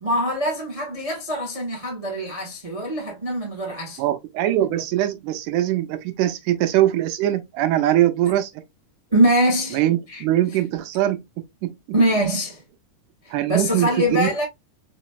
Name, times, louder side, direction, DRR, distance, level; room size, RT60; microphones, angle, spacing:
voice 1, 0.0-4.0 9.1-10.2 10.5-10.6 11.9-12.6 13.2-14.4, equal, 50° right, 0.4 m, -23 dB
voice 2, 4.0-8.5 9.7-11.2 11.6-11.8 13.3-14.3, right 13 dB, 90° right, 2.2 m, -22 dB
4.9 x 3.1 x 2.2 m
omnidirectional pair, 3.5 m